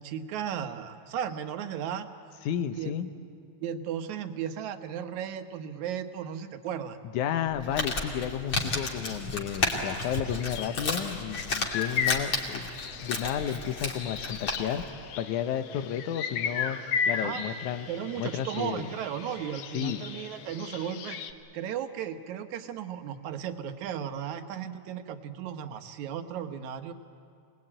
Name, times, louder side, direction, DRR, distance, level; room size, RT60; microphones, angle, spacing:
voice 1, 0.0-2.1 2.7-2.9 3.6-7.0 17.1-17.5 17.9-21.2 21.5-26.9, right 9 dB, 75° right, 7 dB, 2.4 m, -35 dB
voice 2, 2.5-3.1 7.1-12.7 13.0-14.9 15.2-16.8 17.1-17.9 18.2-18.9 19.7-20.0, left 9 dB, 85° left, 9 dB, 2.4 m, -32 dB
Crumpling crinkling, 7.5-14.9, left 2 dB, 40° left, 2.9 m, -33 dB
sound 1, 10.3-21.3, left 7 dB, 65° left, 2.0 m, -35 dB
26.0 x 19.5 x 8.9 m, 2.4 s
omnidirectional pair, 3.4 m